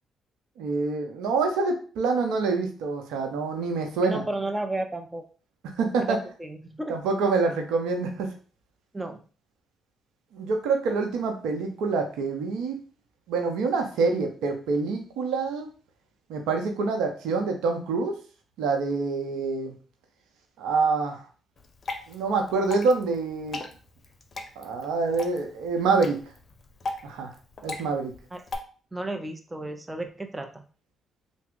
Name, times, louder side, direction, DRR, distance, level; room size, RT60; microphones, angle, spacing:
voice 1, 0.6-4.2 5.8-6.2 6.9-8.3 10.3-12.8 13.3-15.7 16.3-18.1 18.6-19.7 20.6-21.3 22.1-23.6 24.6-26.2 27.0-27.3 27.6-28.1, right 4 dB, 80° right, 4 dB, 0.6 m, -26 dB
voice 2, 4.0-5.2 6.0-7.0 8.9-9.2 28.3-28.4 28.9-30.7, right 2 dB, 20° right, 5 dB, 0.6 m, -33 dB
Water / Drip, 21.6-28.6, left 2 dB, 45° left, 0.6 m, -39 dB
3.4 x 2.0 x 3.6 m, 0.38 s
hypercardioid pair, 50°, 0 cm